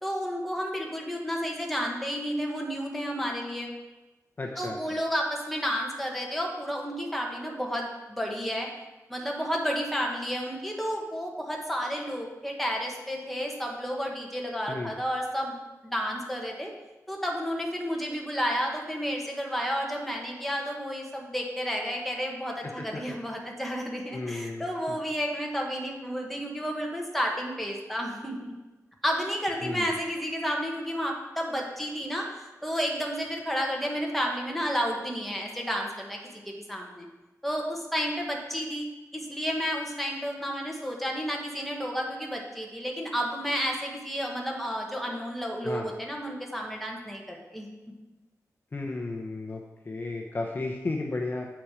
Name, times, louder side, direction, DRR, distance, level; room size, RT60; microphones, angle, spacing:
voice 1, 0.0-3.7 4.6-8.7 9.1-15.6 15.8-16.7 17.1-28.5 29.0-32.3 32.6-36.2 36.4-37.0 37.4-47.7, equal, ahead, 0 dB, 1.4 m, -31 dB
voice 2, 4.4-4.8 14.7-14.9 22.6-22.9 24.1-25.0 29.6-29.9 45.6-45.9 48.7-51.5, left 2 dB, 35° left, 1 dB, 0.7 m, -34 dB
7.9 x 6.0 x 5.0 m, 1.1 s
wide cardioid pair, 140°, 6 cm